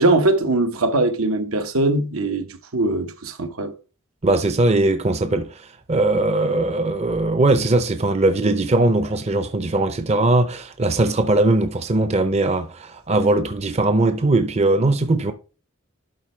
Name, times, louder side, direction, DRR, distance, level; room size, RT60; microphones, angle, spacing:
voice 1, 0.0-3.7, right 2 dB, 80° right, 1.1 m, -21 dB
voice 2, 4.2-5.5 5.9-15.3, right 2 dB, 30° right, 0.6 m, -20 dB
12.0 x 4.4 x 3.2 m
head